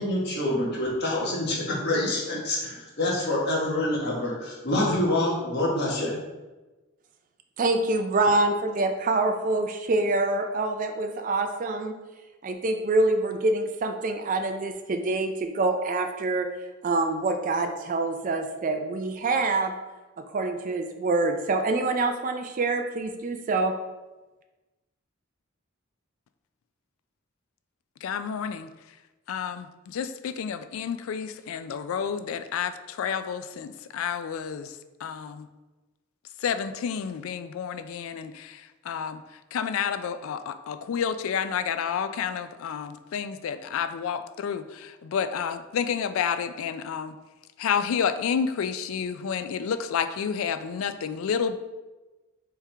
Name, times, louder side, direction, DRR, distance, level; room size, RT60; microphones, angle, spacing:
voice 1, 0.0-6.2, left 1 dB, 50° left, -4 dB, 1.3 m, -26 dB
voice 2, 7.6-11.9 12.4-16.5 16.8-19.7 20.3-23.7, right 2 dB, 40° right, 5 dB, 0.3 m, -26 dB
voice 3, 28.0-28.7 29.3-34.8 35.0-35.5 36.4-39.2 39.5-47.2 47.6-51.6, left 7 dB, 75° left, 11 dB, 0.3 m, -30 dB
4.5 x 3.6 x 3.3 m, 1.1 s
head